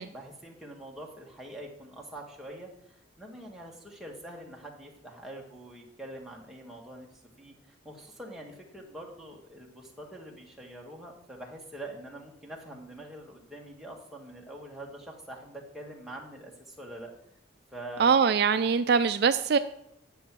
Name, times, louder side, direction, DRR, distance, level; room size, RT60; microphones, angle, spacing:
voice 1, 0.0-7.5 7.8-17.1 17.7-18.2, right 1 dB, ahead, -2 dB, 1.7 m, -44 dB
voice 2, 18.0-19.6, right 6 dB, 55° right, 10 dB, 0.4 m, -23 dB
9.9 x 7.1 x 6.1 m, 0.76 s
head